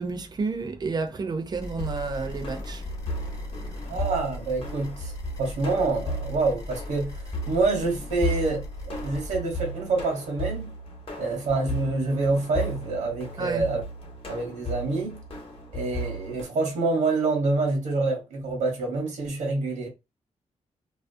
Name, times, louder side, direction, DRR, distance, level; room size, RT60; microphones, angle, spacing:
voice 1, 0.0-2.8 3.6-3.7 13.4-13.6, right 4 dB, 35° right, 0.5 m, -30 dB
sound 1, 1.5-9.3, left 2 dB, 30° left, 0.6 m, -39 dB
sound 2, 1.7-16.4, equal, 45° left, 0.9 m, -35 dB
voice 2, 3.9-5.1 5.4-10.7 11.2-13.8 14.3-15.2 15.7-19.9, right 3 dB, 85° right, 0.9 m, -27 dB
2.4 x 2.1 x 2.5 m
cardioid pair, 110°, 13 cm